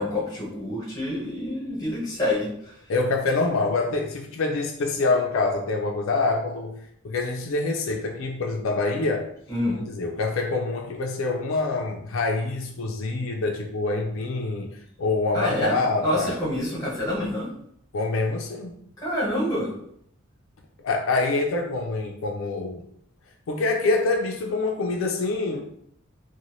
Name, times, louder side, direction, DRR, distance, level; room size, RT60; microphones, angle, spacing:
voice 1, 0.0-2.8 9.5-9.8 15.3-15.7 16.0-17.5 19.0-19.7, left 1 dB, 20° left, -5 dB, 1.1 m, -27 dB
voice 2, 2.9-6.8 7.0-9.3 9.7-16.4 17.9-18.8 20.8-22.8 23.5-25.6, left 3 dB, 85° left, 1 dB, 0.4 m, -26 dB
2.6 x 2.1 x 3.0 m, 0.69 s
head